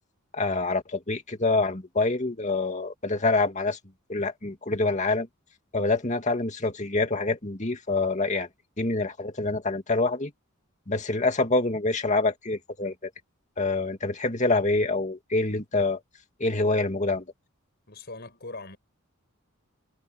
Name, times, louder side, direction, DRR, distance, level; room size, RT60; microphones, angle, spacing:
voice 1, 0.3-3.8 4.1-5.3 5.7-8.5 8.8-10.3 10.9-13.1 13.6-16.0 16.4-17.2, left 3 dB, 35° left, 2.3 m, -26 dB
voice 2, 17.9-18.8, left 2 dB, 50° left, 6.2 m, -40 dB
head